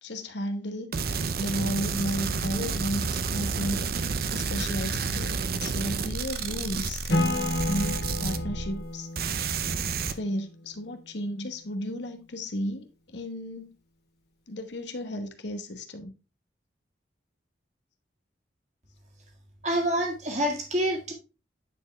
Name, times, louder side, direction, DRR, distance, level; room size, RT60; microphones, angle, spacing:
voice 1, 0.0-9.1 10.0-13.7 14.5-16.1, equal, 75° left, 1.2 m, -34 dB
sound 1, 0.9-8.9 9.2-10.1, right 5 dB, 55° right, 0.6 m, -30 dB
Acoustic guitar / Strum, 7.1-10.7, left 1 dB, 55° left, 2.1 m, -31 dB
voice 2, 19.6-21.1, right 1 dB, 40° right, 1.9 m, -27 dB
9.6 x 4.5 x 3.4 m
head